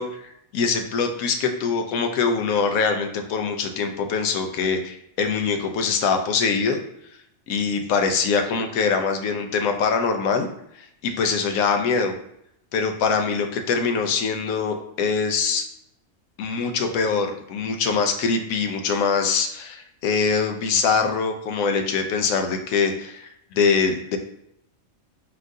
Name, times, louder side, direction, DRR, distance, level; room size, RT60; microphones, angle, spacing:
voice 1, 0.0-6.8 7.5-10.5 11.0-12.1 12.7-15.6 16.4-24.2, left 5 dB, 80° left, 5 dB, 1.0 m, -23 dB
4.4 x 2.5 x 3.7 m, 0.74 s
omnidirectional pair, 1.5 m